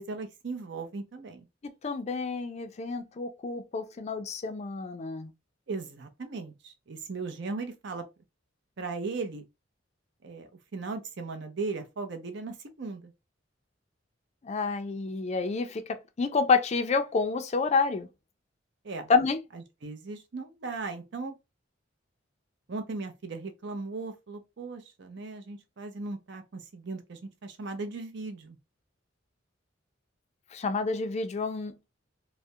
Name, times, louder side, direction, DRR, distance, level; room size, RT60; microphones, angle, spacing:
voice 1, 0.0-1.5 5.7-8.0 8.8-9.4 10.2-13.1 18.8-19.1 19.5-21.3 22.7-28.6, right 3 dB, 65° right, 0.6 m, -37 dB
voice 2, 1.8-5.3 14.4-18.1 19.1-19.4 30.5-31.7, left 4 dB, 35° left, 0.3 m, -28 dB
2.3 x 2.1 x 2.6 m
head